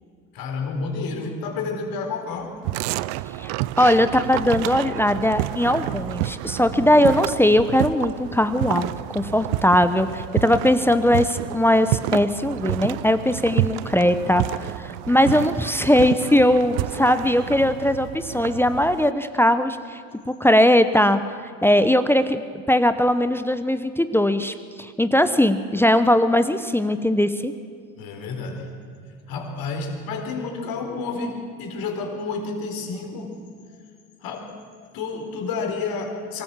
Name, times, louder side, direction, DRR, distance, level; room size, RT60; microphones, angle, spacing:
voice 1, 0.3-2.6 28.0-28.8 29.3-33.4 34.2-34.6 34.9-36.4, left 4 dB, 60° left, 3 dB, 4.2 m, -30 dB
sound 1, 2.6-19.1, right 17 dB, 70° right, 0.6 m, -29 dB
voice 2, 3.4-21.2 21.6-22.4 22.7-27.5, left 1 dB, 5° left, 11 dB, 0.9 m, -20 dB
24.0 x 14.5 x 7.5 m, 2.3 s
hypercardioid pair, 80°, 40 cm